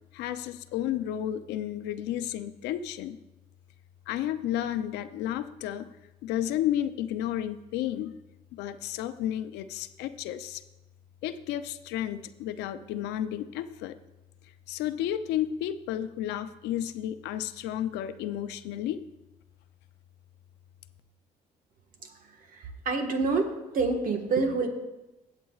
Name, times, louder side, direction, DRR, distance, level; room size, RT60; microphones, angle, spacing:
voice 1, 0.1-3.2 4.1-5.9 6.2-8.2 8.5-10.6 11.2-14.0 14.7-19.0, left 11 dB, 85° left, 11 dB, 0.5 m, -32 dB
voice 2, 22.5-23.5 23.7-24.7, right 4 dB, 55° right, 4 dB, 1.5 m, -27 dB
16.5 x 8.2 x 2.4 m, 1.0 s
cardioid pair, 110°, 17 cm